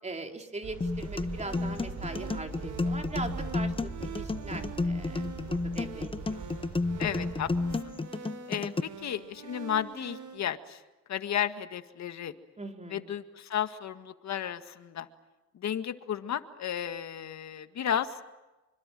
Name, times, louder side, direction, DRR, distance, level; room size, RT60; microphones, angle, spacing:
voice 1, 0.0-6.5 12.6-13.1, right 2 dB, 20° right, 3 dB, 4.3 m, -40 dB
sound 1, 0.6-7.8, right 4 dB, 55° right, 6.7 m, -41 dB
sound 2, 0.8-8.8, left 3 dB, 20° left, 0.8 m, -32 dB
sound 3, 1.0-10.4, right 7 dB, 85° right, 6.4 m, -45 dB
voice 2, 7.0-7.5 7.8-8.0 8.5-10.8 11.1-12.3 12.9-15.1 15.5-18.2, left 9 dB, 65° left, 9 dB, 1.9 m, -33 dB
27.0 x 25.0 x 7.7 m, 1.1 s
cardioid pair, 90°, 30 cm